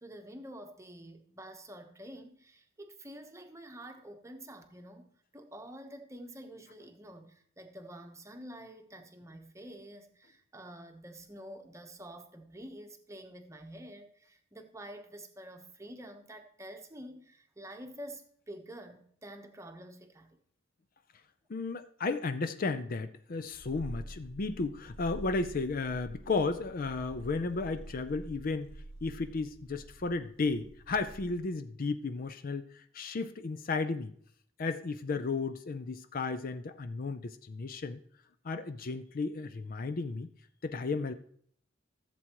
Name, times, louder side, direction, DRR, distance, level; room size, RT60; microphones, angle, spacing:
voice 1, 0.0-20.3, right 1 dB, 15° right, 0.9 m, -48 dB
voice 2, 21.5-28.7 29.0-34.1 34.6-38.0 38.4-40.3 40.6-41.1, left 3 dB, 45° left, 0.5 m, -34 dB
Purr, 23.5-31.6, right 1 dB, 65° left, 0.9 m, -48 dB
14.5 x 7.6 x 3.0 m
head